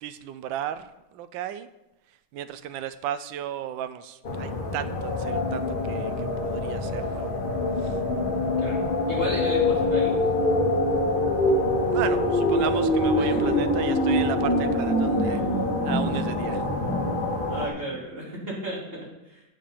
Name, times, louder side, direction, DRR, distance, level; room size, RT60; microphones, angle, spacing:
voice 1, 0.0-1.7 2.3-7.4 7.8-8.0 11.9-15.4 15.8-16.6, right 10 dB, 80° right, 12 dB, 1.3 m, -34 dB
sound 1, 4.2-17.7, left 3 dB, 35° left, 1.0 m, -28 dB
sound 2, 9.1-18.0, equal, ahead, 1.4 m, -25 dB
voice 2, 9.1-10.2 13.2-13.4 15.3-15.4 17.5-19.4, right 1 dB, 30° right, -5 dB, 3.2 m, -34 dB
10.5 x 6.8 x 5.6 m, 0.94 s
omnidirectional pair, 2.1 m